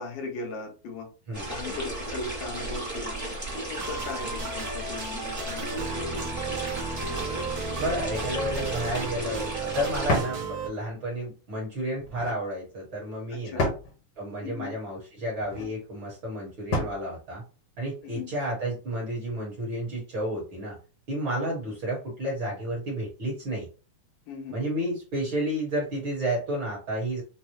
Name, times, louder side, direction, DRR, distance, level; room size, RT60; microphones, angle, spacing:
voice 1, 0.0-1.1 1.5-3.2 3.7-6.2 13.3-13.7 14.4-14.7 18.0-18.3 24.3-24.6, left 3 dB, 85° left, 1 dB, 2.6 m, -38 dB
sound 1, 1.3-10.2, right 1 dB, 10° right, 0.8 m, -34 dB
sound 2, 3.8-10.7, right 3 dB, 75° right, 1.1 m, -35 dB
voice 2, 7.8-13.7 14.2-17.4 17.8-20.8 21.1-23.7 24.5-27.2, right 1 dB, 55° right, -3 dB, 1.4 m, -31 dB
sound 3, 8.7-9.1 10.1-10.4 12.0-12.4 13.6-13.9 15.3-15.7 16.7-17.0, left 1 dB, 60° left, 1.2 m, -29 dB
5.9 x 2.0 x 2.9 m, 0.35 s
omnidirectional pair, 3.6 m